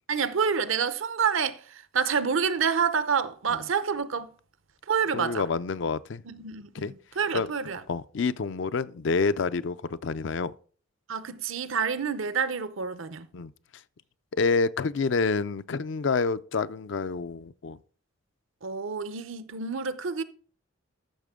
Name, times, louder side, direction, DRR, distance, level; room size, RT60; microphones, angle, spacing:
voice 1, 0.1-4.3 4.9-5.4 6.2-7.8 11.1-13.3 18.6-20.2, right 6 dB, 75° right, 0.7 m, -28 dB
voice 2, 5.1-6.2 6.7-6.9 7.3-7.5 7.9-10.5 13.3-13.5 14.3-17.8, left 4 dB, 60° left, 0.4 m, -28 dB
13.5 x 6.8 x 3.7 m
head